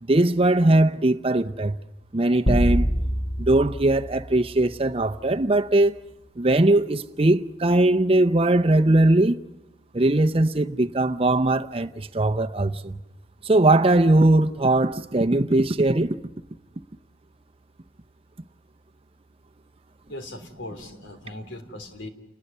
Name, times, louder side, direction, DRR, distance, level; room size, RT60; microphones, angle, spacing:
voice 1, 0.0-1.8 2.1-2.9 3.4-6.0 6.4-9.4 9.9-13.0 13.4-16.2, right 2 dB, 30° right, 0.7 m, -20 dB
sound 1, 2.5-5.0, equal, 30° left, 2.2 m, -25 dB
voice 2, 20.1-22.1, left 1 dB, 85° left, 3.2 m, -39 dB
29.5 x 20.0 x 5.5 m
head